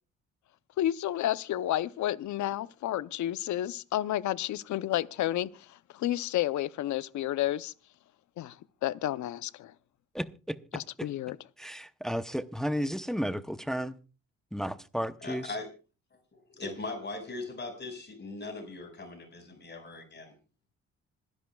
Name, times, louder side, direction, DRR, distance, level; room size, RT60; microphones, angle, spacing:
voice 1, 0.8-7.7 8.4-8.6 8.8-9.7 10.7-11.4, left 13 dB, 70° left, 0.7 m, -31 dB
voice 2, 10.1-10.6 11.0-11.1 11.6-13.9 14.5-15.5, equal, ahead, 0.8 m, -33 dB
voice 3, 15.2-15.7 16.3-20.3, left 3 dB, 35° left, 5.2 m, -40 dB
26.0 x 11.0 x 2.3 m
cardioid pair, 90°, 30 cm